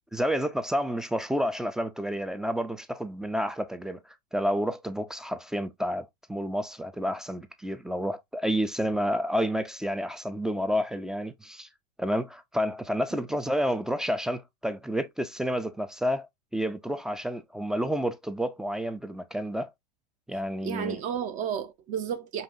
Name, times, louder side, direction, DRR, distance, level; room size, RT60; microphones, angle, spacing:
voice 1, 0.1-4.0 4.3-11.7 12.0-16.3 16.5-19.7 20.3-21.0, equal, 5° right, 0.3 m, -30 dB
voice 2, 20.6-22.4, right 8 dB, 40° right, 0.6 m, -32 dB
5.4 x 2.9 x 2.5 m
supercardioid pair, 140°, 20 cm